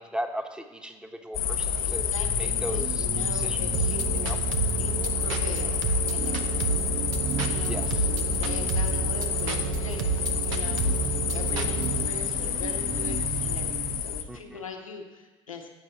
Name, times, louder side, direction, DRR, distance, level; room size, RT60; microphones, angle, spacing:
voice 1, 0.0-2.1 2.4-3.0 3.3-3.6 4.1-4.4 7.7-8.1 14.3-14.6, equal, 5° right, 5 dB, 1.1 m, -37 dB
sound 1, 1.3-14.2, left 8 dB, 55° left, 0.8 m, -29 dB
voice 2, 1.7-4.4 4.7-5.8 6.1-6.7 7.4-15.7, left 4 dB, 90° left, 3 dB, 0.9 m, -41 dB
sound 2, 2.2-14.0, right 11 dB, 45° right, 0.4 m, -37 dB
sound 3, 3.7-12.1, right 6 dB, 75° right, 0.8 m, -30 dB
7.6 x 6.4 x 7.4 m, 1.2 s
hypercardioid pair, 60°, 17 cm